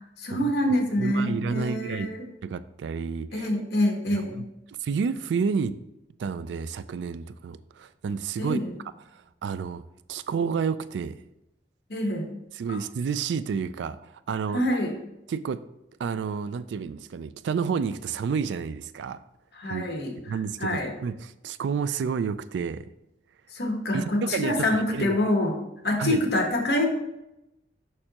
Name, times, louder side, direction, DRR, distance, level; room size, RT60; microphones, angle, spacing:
voice 1, 0.2-2.2 3.3-4.4 8.4-8.7 11.9-12.2 14.5-15.0 19.5-20.1 20.6-20.9 23.5-25.6 25.8-26.9, left 1 dB, 70° left, 2 dB, 1.1 m, -26 dB
voice 2, 1.0-2.1 2.4-3.5 4.1-4.3 4.7-5.8 6.2-8.6 9.1-9.8 10.1-11.2 12.5-14.6 15.3-15.6 16.0-19.2 19.6-19.8 20.3-22.9 23.9-25.2 26.0-26.2, right 6 dB, 85° right, 15 dB, 0.3 m, -30 dB
6.5 x 5.4 x 2.9 m, 0.89 s
head